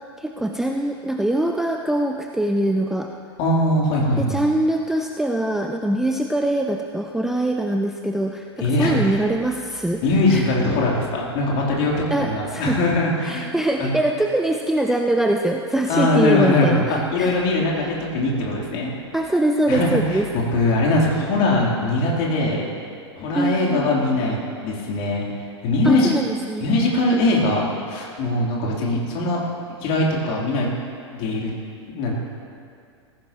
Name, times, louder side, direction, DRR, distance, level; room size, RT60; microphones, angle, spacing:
voice 1, 0.2-3.1 4.2-10.0 10.3-10.5 12.1-12.8 13.2-17.4 19.1-20.2 23.3-23.9 25.8-26.6, right 1 dB, 5° right, 3 dB, 0.5 m, -23 dB
voice 2, 3.4-4.4 8.6-9.2 10.0-13.5 13.8-13.9 15.9-18.9 19.7-22.7 23.1-25.2 25.6-26.1 26.6-29.4 29.8-30.7 31.1-31.5 31.9-32.2, left 2 dB, 40° left, -3 dB, 3.2 m, -21 dB
19.0 x 15.5 x 3.0 m, 2.3 s
figure-of-eight pair, 95°, 15 cm